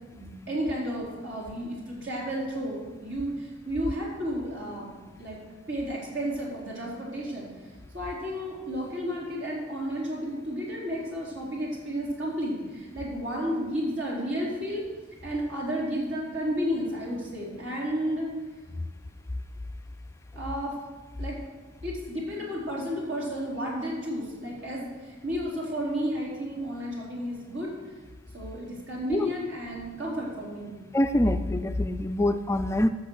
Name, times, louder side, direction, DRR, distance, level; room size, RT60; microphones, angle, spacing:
voice 1, 0.1-5.4 5.7-7.5 7.9-14.8 15.2-18.3 20.4-20.8 21.2-21.4 21.8-27.7 28.3-30.7, equal, 65° right, -4 dB, 4.0 m, -32 dB
voice 2, 30.9-32.9, left 1 dB, 15° left, 9 dB, 0.3 m, -25 dB
14.0 x 6.6 x 6.4 m, 1.3 s
head